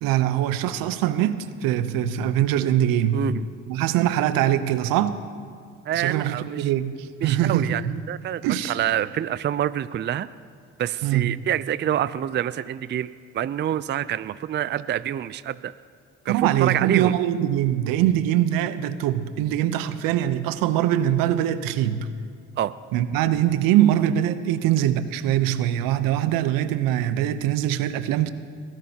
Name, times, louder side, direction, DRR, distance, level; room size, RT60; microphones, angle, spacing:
voice 1, 0.0-3.2 3.7-5.2 5.9-8.0 8.4-8.8 11.0-11.3 16.3-22.1 22.9-28.3, right 11 dB, 75° right, 12 dB, 0.8 m, -23 dB
voice 2, 3.1-3.5 5.9-6.7 7.2-7.8 8.1-8.4 8.7-10.3 10.8-13.1 13.3-15.7 16.3-17.2 22.6-22.7, right 11 dB, 30° right, 15 dB, 0.4 m, -26 dB
23.0 x 16.0 x 2.9 m, 2.2 s
hypercardioid pair, 60°, 34 cm